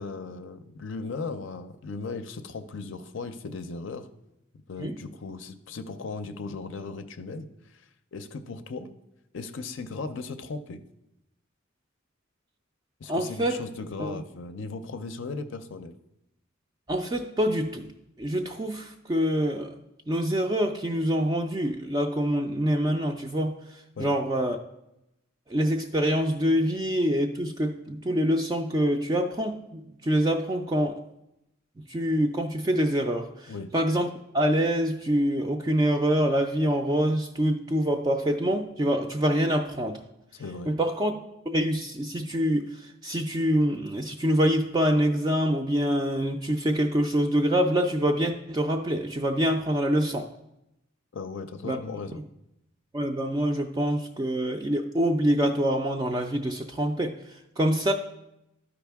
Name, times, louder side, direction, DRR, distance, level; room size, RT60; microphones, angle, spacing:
voice 1, 0.0-4.1 4.7-7.9 8.1-8.9 9.3-10.8 13.0-15.9 24.0-24.1 33.5-33.7 40.3-40.7 51.1-52.2, left 4 dB, 60° left, 9 dB, 0.5 m, -37 dB
voice 2, 13.1-13.6 14.0-14.2 16.9-17.9 18.2-19.8 20.1-24.6 25.5-31.0 31.9-34.1 34.3-40.0 40.7-41.2 41.5-50.3 51.6-51.8 52.9-57.9, equal, 20° right, 3 dB, 0.3 m, -25 dB
12.0 x 5.0 x 3.5 m, 0.87 s
head